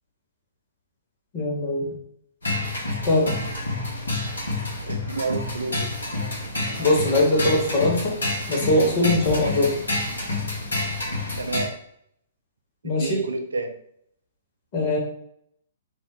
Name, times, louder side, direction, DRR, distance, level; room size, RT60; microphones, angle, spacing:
voice 1, 1.3-1.9 3.0-3.3 6.8-8.2 8.5-9.7 12.8-13.3 14.7-15.0, left 1 dB, 35° left, -2 dB, 1.1 m, -21 dB
sound 1, 2.4-11.6, left 2 dB, 75° left, 1.0 m, -28 dB
voice 2, 4.8-5.9 11.4-11.7 12.8-13.7, right 3 dB, 70° right, 6 dB, 0.4 m, -30 dB
2.6 x 2.0 x 3.7 m, 0.70 s
figure-of-eight pair, 120°, 0 cm